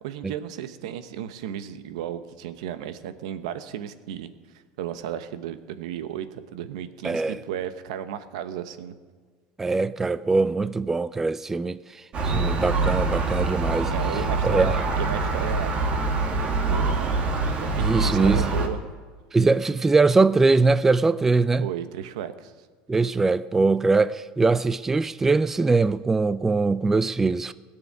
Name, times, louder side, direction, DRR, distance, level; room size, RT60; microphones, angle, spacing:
voice 1, 0.0-4.3 4.8-9.0 13.9-15.8 16.6-17.2 17.6-18.8 21.6-22.5, right 10 dB, 90° right, 1.0 m, -34 dB
voice 2, 7.0-7.4 9.6-13.9 14.4-14.8 17.8-18.5 19.3-21.7 22.9-27.5, right 3 dB, 10° right, 0.3 m, -22 dB
Gull seagull, 12.1-18.7, right 3 dB, 35° right, 1.8 m, -25 dB
17.5 x 6.9 x 9.5 m
supercardioid pair, 135°, 3 cm